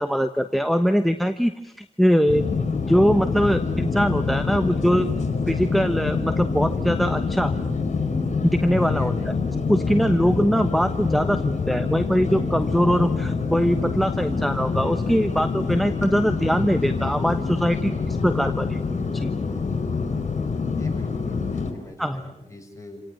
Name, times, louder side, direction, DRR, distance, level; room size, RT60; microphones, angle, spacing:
voice 1, 0.0-2.4 2.9-5.1 5.5-7.5 8.4-9.3 9.7-19.3 22.0-22.2, equal, ahead, 10 dB, 1.2 m, -22 dB
sound 1, 2.3-21.7, left 4 dB, 60° left, 5.2 m, -26 dB
voice 2, 8.8-9.3 20.8-23.0, left 2 dB, 25° left, 2 dB, 7.3 m, -40 dB
28.5 x 18.5 x 9.2 m, 0.85 s
cardioid pair, 75°, 13 cm